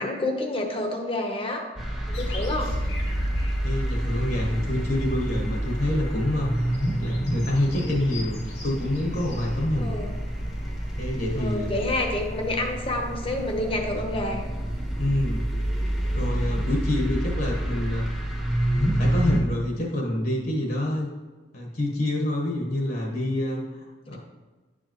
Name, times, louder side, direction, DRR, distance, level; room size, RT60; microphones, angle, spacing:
voice 1, 0.0-1.6 2.1-2.7 9.8-10.1 11.4-14.4, left 1 dB, 30° left, 3 dB, 1.0 m, -28 dB
sound 1, 1.8-19.4, equal, 5° right, 1.0 m, -28 dB
sound 2, 2.1-13.7, left 2 dB, 85° left, 2.2 m, -44 dB
voice 2, 3.6-6.7 7.0-10.0 11.0-11.7 15.0-15.4 16.1-18.1 18.6-21.1 21.5-24.2, left 1 dB, 55° left, -1 dB, 1.2 m, -27 dB
9.8 x 4.9 x 3.0 m, 1.3 s
head